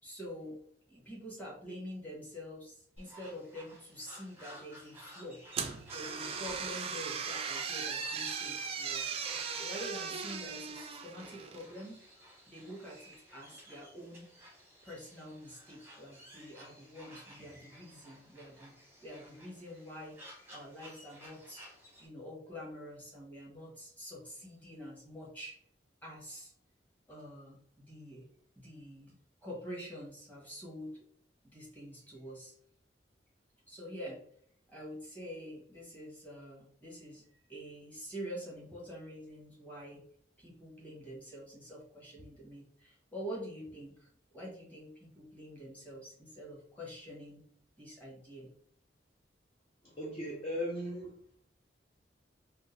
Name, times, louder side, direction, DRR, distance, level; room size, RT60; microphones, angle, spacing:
voice 1, 0.0-0.6 0.9-5.4 5.9-9.1 9.5-12.0 12.5-14.3 14.8-20.2 20.5-25.5 26.0-26.5 27.1-28.3 28.5-31.0 31.4-32.5 33.7-34.2 34.7-40.0 40.4-47.4 47.8-48.5, equal, 10° left, -5 dB, 1.4 m, -46 dB
sound 1, 3.0-22.1, equal, 15° right, 0.8 m, -55 dB
sound 2, 5.5-11.7, right 6 dB, 35° right, 0.3 m, -38 dB
voice 2, 49.8-51.2, equal, 35° left, -4 dB, 0.5 m, -37 dB
3.6 x 2.5 x 2.7 m, 0.63 s
head